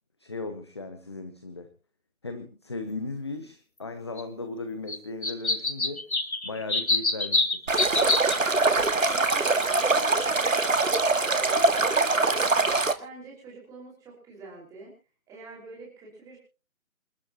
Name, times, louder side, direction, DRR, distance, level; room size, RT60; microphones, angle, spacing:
voice 1, 0.2-1.7 2.2-6.0 6.4-7.7, left 3 dB, 20° left, 9 dB, 0.8 m, -37 dB
sound 1, 4.2-4.3 4.9-5.0 5.2-8.4 9.3-9.4 9.6-9.7, left 2 dB, 85° left, 2.2 m, -25 dB
Stream, 7.7-12.9, right 3 dB, 70° right, 2.0 m, -23 dB
voice 2, 8.6-12.5 13.0-14.9 15.3-16.4, right 3 dB, 10° right, -3 dB, 5.3 m, -44 dB
27.5 x 11.5 x 3.0 m, 0.34 s
figure-of-eight pair, 155°, 41 cm